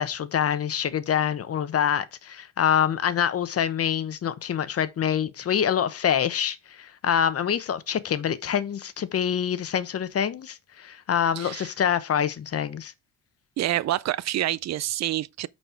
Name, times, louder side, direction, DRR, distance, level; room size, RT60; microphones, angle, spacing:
voice 1, 0.0-12.9, left 8 dB, 50° left, 1.0 m, -26 dB
voice 2, 11.4-11.7 13.6-15.5, right 13 dB, 60° right, 0.5 m, -27 dB
8.9 x 4.4 x 4.5 m
cardioid pair, 90°, 30 cm